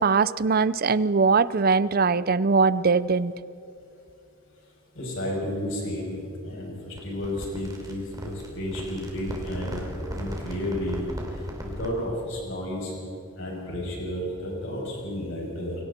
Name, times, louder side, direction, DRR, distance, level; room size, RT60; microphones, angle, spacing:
voice 1, 0.0-3.3, right 4 dB, 45° right, 17 dB, 0.5 m, -21 dB
voice 2, 4.9-9.8 10.1-11.0 11.8-12.9 13.4-15.8, left 1 dB, 60° left, -2 dB, 7.5 m, -32 dB
sound 1, 7.0-12.0, equal, 15° right, 3.2 m, -37 dB
29.5 x 24.0 x 4.4 m, 2.7 s
head